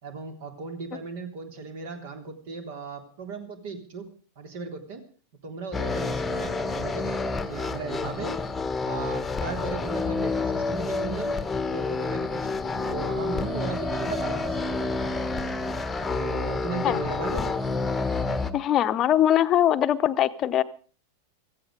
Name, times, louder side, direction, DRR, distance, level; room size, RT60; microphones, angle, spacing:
voice 1, 0.0-4.1 4.4-5.0 5.4-8.4 8.8-11.4 11.7-15.3 16.1-17.6, right 4 dB, 55° right, 6 dB, 3.5 m, -36 dB
sound 1, 5.7-18.5, left 3 dB, 10° left, 1.3 m, -29 dB
voice 2, 18.5-20.6, left 11 dB, 30° left, 11 dB, 1.0 m, -22 dB
16.0 x 15.0 x 5.2 m, 0.41 s
figure-of-eight pair, 90°, 0 cm